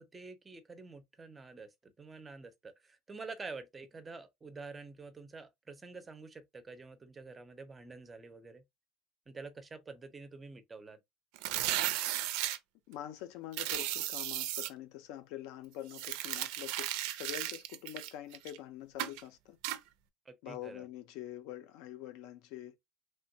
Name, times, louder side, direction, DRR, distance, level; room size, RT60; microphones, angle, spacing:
voice 1, 0.0-8.6 9.3-11.0 20.3-20.9, right 3 dB, 15° right, 0.5 m, -48 dB
sound 1, 11.4-12.6 13.5-14.7 15.9-18.6 19.0-19.2 19.6-19.8, right 14 dB, 75° right, 0.4 m, -35 dB
voice 2, 12.9-19.6 20.4-22.8, left 12 dB, 70° left, 0.5 m, -45 dB
3.3 x 2.2 x 2.6 m
cardioid pair, 165°, 0 cm